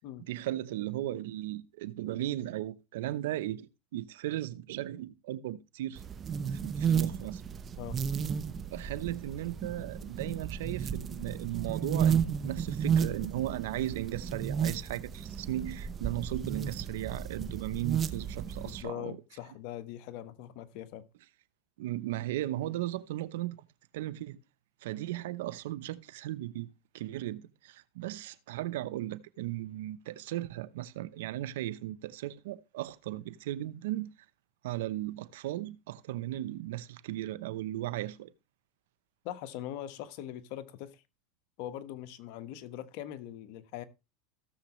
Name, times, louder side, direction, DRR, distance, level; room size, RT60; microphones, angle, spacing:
voice 1, 0.3-6.0 6.5-7.4 8.7-19.2 21.8-23.6 23.9-24.4 24.8-26.7 26.9-34.1 34.6-38.3, right 14 dB, 80° right, 0.8 m, -36 dB
sound 1, 6.0-18.8, right 7 dB, 30° right, 0.9 m, -33 dB
voice 2, 18.6-21.0 39.2-41.0 41.6-43.8, left 12 dB, 65° left, 1.3 m, -41 dB
16.0 x 7.0 x 3.1 m
supercardioid pair, 120°, 0 cm